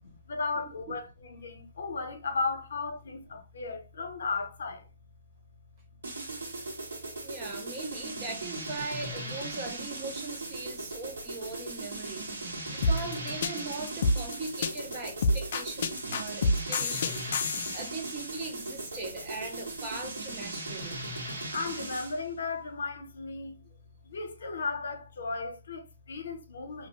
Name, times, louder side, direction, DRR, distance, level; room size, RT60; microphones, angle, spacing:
voice 1, 0.0-4.9 10.8-10.9 11.5-11.6 14.8-14.9 16.1-16.5 18.4-18.5 18.8-18.9 20.6-23.6 24.0-26.9, left 4 dB, 65° left, 0.7 m, -36 dB
sound 1, 6.0-22.2, right 2 dB, 80° right, 1.4 m, -38 dB
voice 2, 7.2-21.0, right 3 dB, 20° right, 0.5 m, -40 dB
sound 2, 12.8-17.9, left 2 dB, 40° left, 0.3 m, -28 dB
2.6 x 2.1 x 2.9 m
hypercardioid pair, 175°, 0 cm